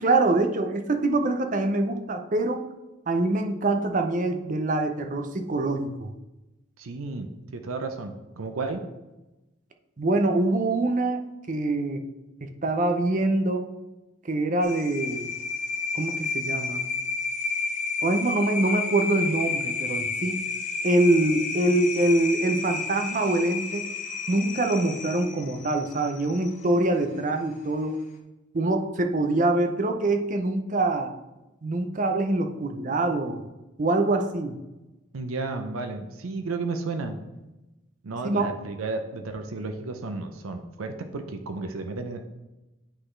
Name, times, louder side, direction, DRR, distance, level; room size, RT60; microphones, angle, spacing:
voice 1, 0.0-2.6 3.1-6.1 10.0-12.0 12.4-13.7 14.2-15.3 15.9-16.8 18.0-20.4 20.8-23.9 24.3-28.0 28.5-31.1 31.6-33.4 33.8-34.6 38.2-38.5, right 2 dB, 40° right, 6 dB, 0.5 m, -24 dB
voice 2, 6.8-8.8 35.1-37.2 38.0-42.2, right 3 dB, 85° right, 7 dB, 0.6 m, -33 dB
sound 1, 14.6-26.6, left 4 dB, 35° left, 0.7 m, -31 dB
9.9 x 3.9 x 3.2 m, 1.0 s
head